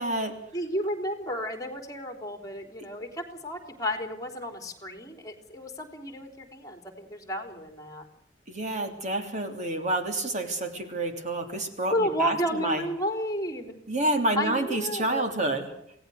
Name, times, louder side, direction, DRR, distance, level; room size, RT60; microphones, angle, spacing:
voice 1, 0.0-0.4 8.5-12.8 13.9-15.7, right 2 dB, 40° right, 5 dB, 3.0 m, -28 dB
voice 2, 0.5-8.0 11.9-13.7 14.4-15.3, equal, 20° left, 6 dB, 3.9 m, -32 dB
27.5 x 18.0 x 6.5 m, 0.72 s
head